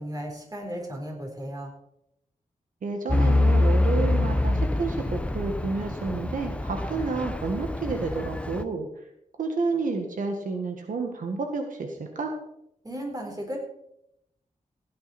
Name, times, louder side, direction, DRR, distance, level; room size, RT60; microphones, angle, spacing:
voice 1, 0.0-1.7 12.8-13.6, equal, 30° right, 1 dB, 3.9 m, -35 dB
voice 2, 2.8-9.0 9.4-12.3, right 4 dB, 85° right, 4 dB, 1.7 m, -30 dB
Truck / Idling, 3.1-8.6, left 2 dB, 10° left, 0.7 m, -25 dB
16.5 x 9.6 x 4.4 m, 0.79 s
wide cardioid pair, 90°, 13 cm